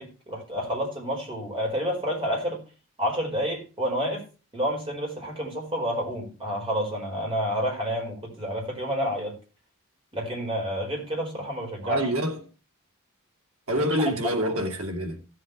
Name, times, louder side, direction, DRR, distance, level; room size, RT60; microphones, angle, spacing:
voice 1, 0.0-2.6 3.0-4.2 4.5-9.3 10.1-12.1 13.7-13.9 14.2-14.3, equal, 25° right, 4.8 m, -29 dB
voice 2, 11.8-12.4 13.7-15.2, equal, 75° right, 2.5 m, -26 dB
16.0 x 7.7 x 3.2 m
head